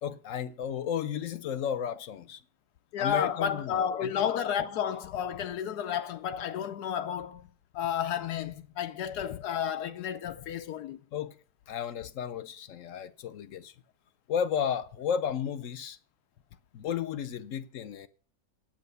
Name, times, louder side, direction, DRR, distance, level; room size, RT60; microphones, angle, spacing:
voice 1, 0.0-2.4 3.0-4.1 11.1-11.3 11.7-13.7 14.3-16.0 16.7-18.1, left 8 dB, 65° left, 1.0 m, -33 dB
voice 2, 2.9-7.5 7.7-11.0, left 9 dB, 90° left, 1.3 m, -31 dB
9.2 x 8.6 x 6.8 m
omnidirectional pair, 1.7 m